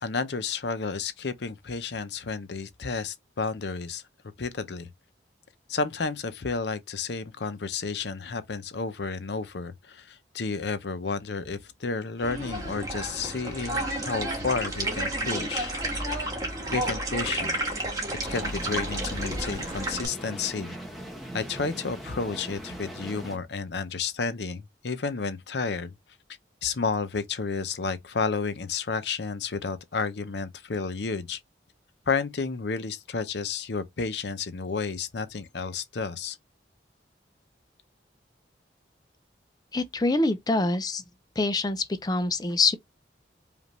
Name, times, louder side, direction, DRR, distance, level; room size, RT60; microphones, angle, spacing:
voice 1, 0.0-4.0 4.4-4.9 5.7-15.7 16.7-17.6 18.3-20.8 21.3-25.9 26.6-31.4 32.1-36.4, left 4 dB, 70° left, 0.7 m, -31 dB
sound 1, 12.2-20.0, right 1 dB, 20° right, 1.3 m, -31 dB
sound 2, 18.2-23.4, right 1 dB, ahead, 1.0 m, -40 dB
voice 2, 39.7-41.0 41.4-42.8, left 3 dB, 20° left, 0.4 m, -25 dB
5.2 x 2.5 x 3.0 m
head